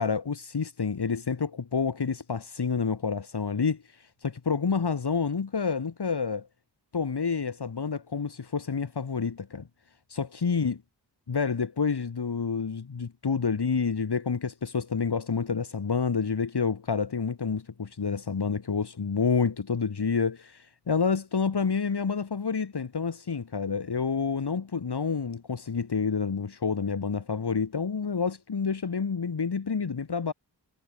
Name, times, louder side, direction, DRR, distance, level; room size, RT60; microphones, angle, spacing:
voice 1, 0.0-6.5 6.9-9.7 10.1-10.8 11.3-30.3, left 5 dB, 65° left, 2.8 m, -28 dB
wide cardioid pair, 65°, 42 cm